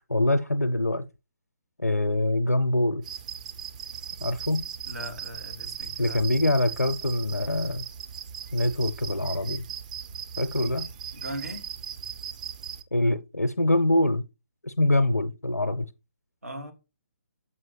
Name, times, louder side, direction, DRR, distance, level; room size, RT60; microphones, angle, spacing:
voice 1, 0.1-1.1 1.8-3.0 4.2-4.7 6.0-7.9 8.5-9.6 10.4-10.9 12.9-14.3 14.6-15.9, left 1 dB, 85° left, 0.6 m, -24 dB
sound 1, 3.0-12.8, right 8 dB, 30° right, 0.5 m, -38 dB
voice 2, 4.9-6.2 10.6-10.7 11.1-11.7 16.4-16.7, equal, 70° right, 2.1 m, -38 dB
7.5 x 5.6 x 3.1 m
figure-of-eight pair, 140°, 8 cm